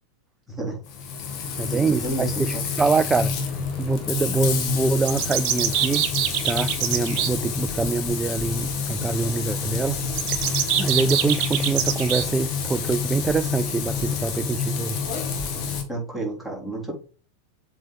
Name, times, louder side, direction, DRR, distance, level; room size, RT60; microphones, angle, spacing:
voice 1, 0.5-0.8 1.6-2.6 15.9-16.9, right 2 dB, 5° left, 3.8 m, -31 dB
Frying (food), 0.8-15.8, left 6 dB, 40° left, 1.8 m, -28 dB
voice 2, 1.6-3.3 3.8-6.1 6.4-10.0 10.3-10.5 10.8-15.0, right 4 dB, 15° right, 0.3 m, -25 dB
sound 1, 5.0-7.3 10.1-12.3, right 11 dB, 45° right, 1.0 m, -25 dB
7.5 x 4.4 x 5.0 m
figure-of-eight pair, 90°, 0 cm